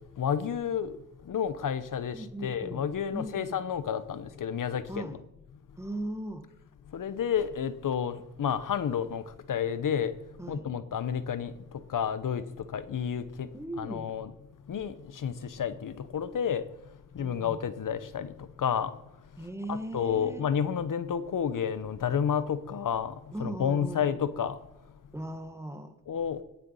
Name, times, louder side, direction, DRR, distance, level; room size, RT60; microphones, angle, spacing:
voice 1, 0.2-0.9 1.3-5.2 6.9-9.2 9.5-10.1 10.5-11.5 11.9-12.4 12.7-13.5 13.8-14.3 14.7-16.6 17.1-18.9 19.7-23.1 23.4-24.6 26.1-26.4, left 8 dB, 65° left, 0.8 m, -30 dB
voice 2, 2.1-2.9 3.1-3.6 4.9-5.2 5.8-6.5 10.4-10.7 13.5-14.1 17.2-17.6 19.4-20.4 23.3-24.1 25.1-26.0, right 1 dB, 10° right, 1.2 m, -38 dB
18.0 x 6.8 x 5.5 m
wide cardioid pair, 110°, 34 cm